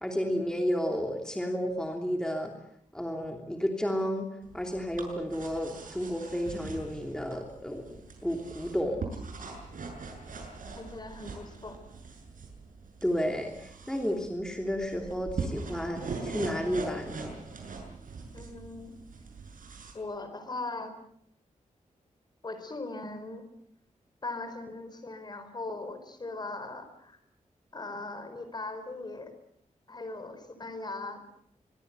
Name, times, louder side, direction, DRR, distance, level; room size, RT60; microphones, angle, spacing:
voice 1, 0.0-2.5 2.9-4.3 4.5-9.1 13.0-17.4, equal, 5° left, 2 dB, 3.0 m, -32 dB
sound 1, 4.4-19.9, right 4 dB, 90° right, 7.3 m, -42 dB
voice 2, 10.8-11.8 18.3-18.9 19.9-20.9 22.4-23.4 24.2-27.2 27.7-29.3 29.9-31.2, left 2 dB, 30° left, 9 dB, 4.4 m, -39 dB
24.5 x 23.5 x 8.1 m, 0.69 s
wide cardioid pair, 165°, 13 cm